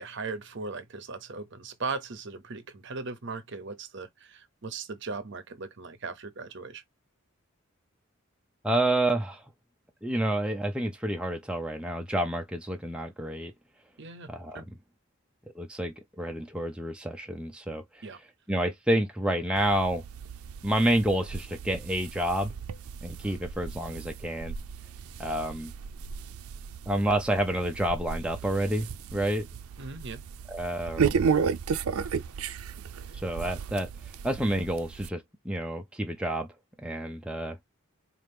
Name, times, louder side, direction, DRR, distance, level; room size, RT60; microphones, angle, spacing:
voice 1, 0.0-6.8 14.0-14.6 18.0-18.2 29.8-30.2, right 4 dB, 55° right, 0.7 m, -38 dB
voice 2, 8.6-9.4 10.0-13.5 14.3-14.6 15.6-18.0 18.5-20.0 20.6-22.5 23.0-24.5 25.2-25.7 26.9-29.5 30.5-31.2 33.1-33.9 34.2-36.5 36.8-37.6, right 1 dB, 5° right, 0.4 m, -29 dB
sound 1, 19.6-35.1, right 6 dB, 85° right, 0.4 m, -34 dB
4.3 x 2.5 x 3.4 m
head